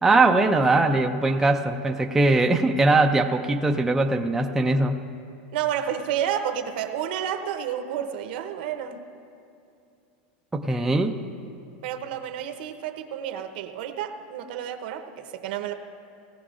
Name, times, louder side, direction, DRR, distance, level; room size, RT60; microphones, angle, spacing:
voice 1, 0.0-5.0 10.5-11.2, right 2 dB, 5° right, 3 dB, 0.4 m, -21 dB
voice 2, 5.5-9.1 11.8-15.7, right 9 dB, 70° right, 6 dB, 0.9 m, -30 dB
18.5 x 14.5 x 2.5 m, 2.6 s
supercardioid pair, 150°, 6 cm